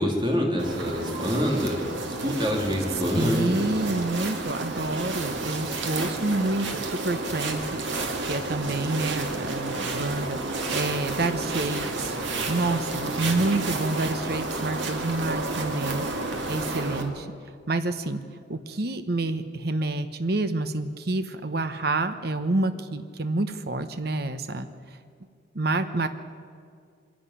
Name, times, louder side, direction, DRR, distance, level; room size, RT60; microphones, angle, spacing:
voice 1, 0.0-3.6 13.0-13.6, equal, 25° right, 0 dB, 2.8 m, -27 dB
sound 1, 0.6-17.0, right 2 dB, 85° right, 2.2 m, -31 dB
voice 2, 3.1-12.1 12.5-16.0 16.5-17.3 17.7-18.2 18.5-24.7 25.5-26.1, right 2 dB, 55° right, 9 dB, 0.9 m, -28 dB
23.5 x 11.5 x 9.8 m, 2.2 s
head